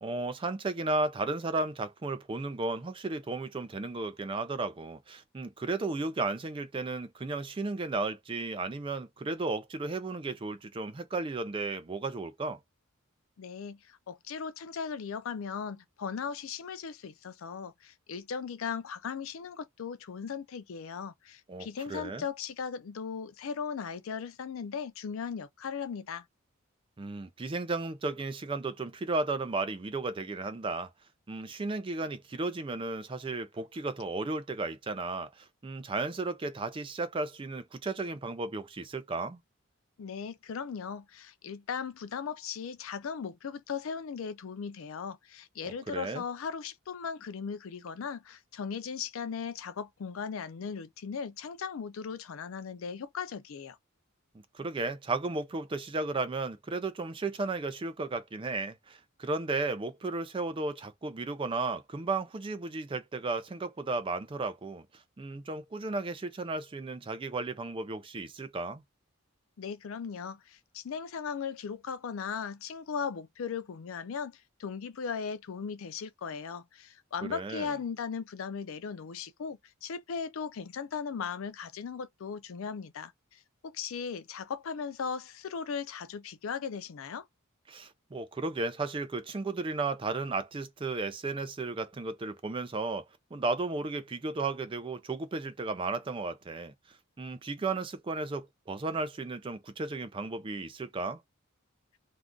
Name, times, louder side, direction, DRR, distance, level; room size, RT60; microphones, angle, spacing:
voice 1, 0.0-12.6 21.5-22.2 27.0-30.9 31.3-39.4 45.6-46.2 54.5-64.9 65.2-68.8 77.2-77.7 87.7-93.0 93.3-96.7 97.2-101.2, right 3 dB, 25° right, 0.4 m, -34 dB
voice 2, 13.4-26.2 40.0-53.8 69.6-87.3, left 6 dB, 75° left, 0.4 m, -38 dB
2.5 x 2.3 x 3.5 m
head